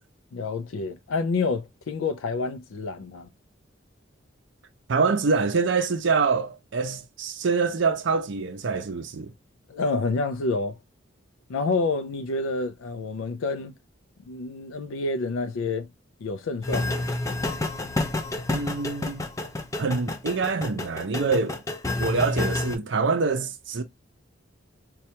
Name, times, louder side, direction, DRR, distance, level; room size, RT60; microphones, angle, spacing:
voice 1, 0.3-3.3 9.7-10.8 11.5-13.7 14.3-15.9 16.2-17.1, left 3 dB, 85° left, 0.4 m, -28 dB
voice 2, 4.9-9.3 18.5-19.2 19.8-21.6 22.0-23.8, right 4 dB, 65° right, 0.5 m, -25 dB
sound 1, 16.6-22.8, left 2 dB, 15° left, 0.4 m, -29 dB
4.3 x 2.3 x 2.7 m
head